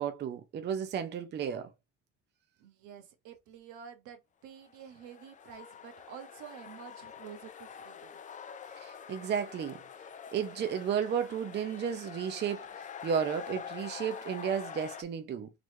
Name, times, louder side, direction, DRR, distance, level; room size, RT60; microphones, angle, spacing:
voice 1, 0.0-1.7 8.8-9.8 10.3-15.5, right 8 dB, 35° right, 0.6 m, -33 dB
voice 2, 2.6-8.2, right 8 dB, 75° right, 1.3 m, -49 dB
sound 1, 4.6-15.0, left 7 dB, 25° left, 0.4 m, -46 dB
4.0 x 3.1 x 3.1 m
cardioid pair, 125°, 30 cm